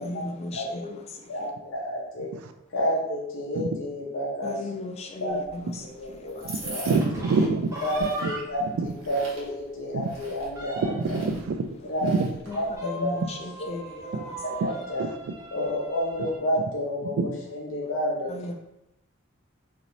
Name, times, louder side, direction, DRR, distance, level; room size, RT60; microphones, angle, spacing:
voice 1, 0.0-1.5 4.4-6.8 12.5-14.6 18.3-18.5, left 2 dB, 30° left, 0.3 m, -37 dB
voice 2, 0.5-0.9 1.3-2.3 2.7-4.6 5.2-5.4 6.0-6.9 7.8-8.6 9.1-11.2 11.9-12.1 12.5-13.1 14.4-15.0 15.5-18.5, equal, 65° left, 0.6 m, -30 dB
sound 1, 5.3-12.8, right 1 dB, 65° right, 1.0 m, -44 dB
voice 3, 6.4-7.7 8.0-8.3 8.8-8.9 9.9-10.1 10.8-11.7 12.0-12.3 14.6-14.7 15.0-15.1 17.0-17.4, right 4 dB, 90° right, 0.3 m, -26 dB
sound 2, 6.9-8.7 9.1-9.2 9.6-9.7 10.0-11.2 12.5-16.4, right 2 dB, 15° right, 0.6 m, -39 dB
2.6 x 2.6 x 3.0 m
head